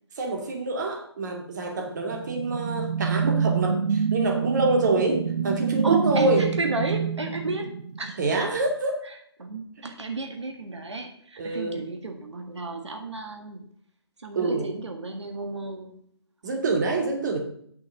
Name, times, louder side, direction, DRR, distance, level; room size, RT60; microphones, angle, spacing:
voice 1, 0.2-6.4 8.2-9.0 11.4-11.8 14.3-14.7 16.4-17.4, right 2 dB, 40° right, 3 dB, 2.5 m, -26 dB
sound 1, 1.9-8.4, right 6 dB, 65° right, 0.6 m, -27 dB
voice 2, 5.8-8.2 9.0-13.7 14.2-16.0, right 3 dB, 85° right, 5 dB, 1.8 m, -32 dB
8.6 x 7.1 x 6.6 m, 0.65 s
hypercardioid pair, 160°, 14 cm